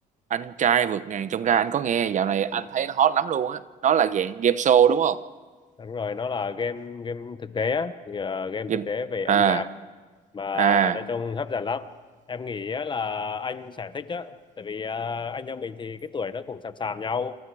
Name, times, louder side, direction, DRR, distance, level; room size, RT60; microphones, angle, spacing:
voice 1, 0.3-5.2 8.7-8.9 9.3-9.6 10.5-11.0, right 8 dB, 45° right, 0.9 m, -22 dB
voice 2, 5.8-9.7 10.3-11.9 12.3-17.4, left 5 dB, 30° left, 1.0 m, -31 dB
27.5 x 27.5 x 4.9 m
cardioid pair, 110°, 17 cm